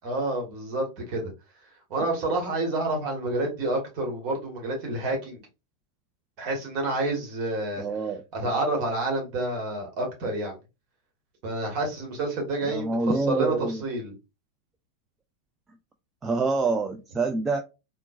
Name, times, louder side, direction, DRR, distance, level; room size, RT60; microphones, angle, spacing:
voice 1, 0.0-1.3 1.9-5.4 6.4-7.8 8.3-10.5 11.4-14.1, right 2 dB, 40° right, 1.3 m, -29 dB
voice 2, 7.8-8.2 12.7-13.8 16.2-17.6, right 3 dB, 15° right, 0.3 m, -26 dB
3.7 x 2.1 x 2.3 m
figure-of-eight pair, 90°, 0 cm